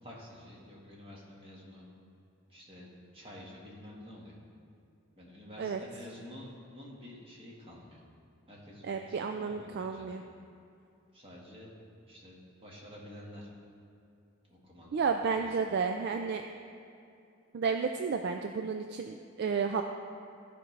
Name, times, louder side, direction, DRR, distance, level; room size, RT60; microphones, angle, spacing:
voice 1, 0.0-1.8 2.5-4.3 5.2-8.0 8.5-10.2 11.1-11.7 12.1-13.5 14.5-15.5, left 1 dB, 25° right, -4 dB, 1.6 m, -50 dB
voice 2, 8.8-10.2 14.9-16.4 17.5-19.8, right 5 dB, 50° right, 5 dB, 0.3 m, -32 dB
14.5 x 5.2 x 3.3 m, 2.6 s
head